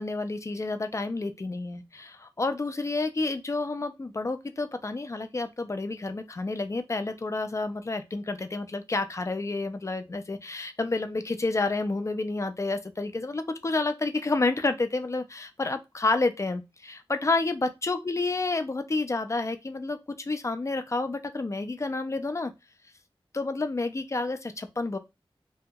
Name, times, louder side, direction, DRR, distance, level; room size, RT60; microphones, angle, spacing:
voice 1, 0.0-22.5 23.3-25.0, left 3 dB, 30° left, 0.3 m, -29 dB
2.7 x 2.7 x 2.2 m
wide cardioid pair, 65°, 9 cm